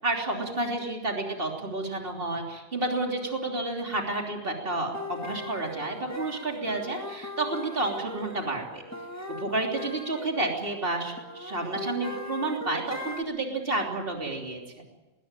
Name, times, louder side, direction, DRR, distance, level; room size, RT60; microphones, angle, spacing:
voice 1, 0.0-8.8 9.4-14.6, right 2 dB, 55° right, 1 dB, 3.5 m, -30 dB
sound 1, 4.9-13.2, left 1 dB, 15° left, 2.0 m, -40 dB
20.5 x 19.5 x 9.0 m, 1.1 s
omnidirectional pair, 1.1 m